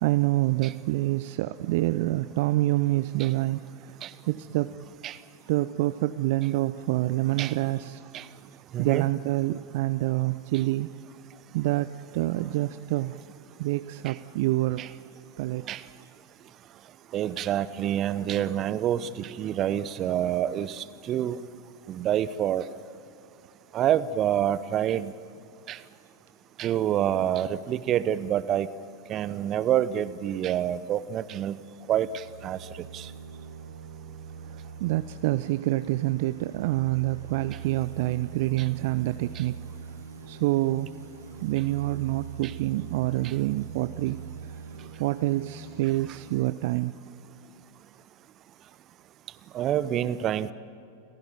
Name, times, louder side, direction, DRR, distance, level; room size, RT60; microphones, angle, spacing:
voice 1, 0.0-3.9 4.3-4.8 5.5-8.0 8.8-10.9 11.5-13.2 13.6-14.8 15.4-15.8 34.5-39.6 40.3-40.9 41.4-44.2 45.0-46.9, right 17 dB, 50° right, 12 dB, 0.6 m, -27 dB
voice 2, 8.7-9.1 14.1-14.2 14.8-14.9 15.7-15.8 17.1-21.4 21.9-22.6 23.7-25.1 25.7-25.8 26.6-28.7 29.1-31.6 31.9-32.6 32.9-33.1 42.4-42.5 49.5-50.5, right 11 dB, 30° right, 16 dB, 0.9 m, -27 dB
sound 1, 30.9-46.1, right 6 dB, 85° right, 2.9 m, -43 dB
29.5 x 15.5 x 9.2 m, 2.6 s
figure-of-eight pair, 90°, 0 cm